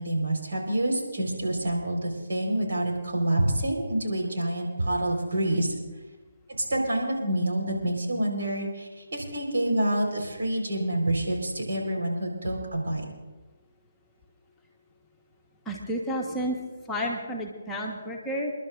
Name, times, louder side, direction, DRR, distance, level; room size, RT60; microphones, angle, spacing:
voice 1, 0.0-5.7 6.6-13.0, right 1 dB, 70° right, -1 dB, 4.5 m, -27 dB
voice 2, 15.6-16.6 16.9-18.5, equal, 10° left, -2 dB, 1.4 m, -31 dB
29.5 x 11.5 x 2.6 m, 1.2 s
figure-of-eight pair, 145°, 0 cm